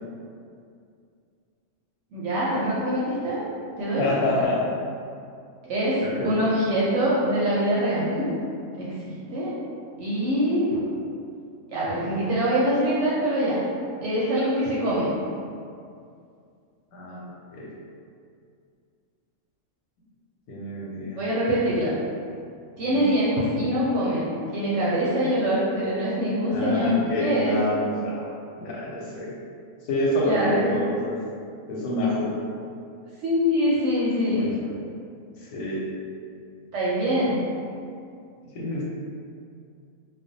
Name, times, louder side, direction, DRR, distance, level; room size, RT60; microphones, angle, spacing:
voice 1, 2.1-3.4 3.8-4.1 5.6-8.2 8.7-9.5 10.0-10.8 11.7-13.6 14.0-15.1 21.2-21.9 22.8-26.9 27.2-27.5 30.2-30.7 33.2-34.5 36.7-37.4, equal, 65° right, -8 dB, 0.8 m, -24 dB
voice 2, 4.0-4.6 6.0-6.4 16.9-17.7 20.5-21.3 22.9-23.0 26.5-28.3 28.6-29.3 29.8-31.2 31.7-32.3 34.4-34.7 35.4-35.9 38.5-38.8, left 1 dB, 90° left, -4 dB, 1.1 m, -27 dB
2.4 x 2.0 x 2.6 m, 2.4 s
omnidirectional pair, 1.5 m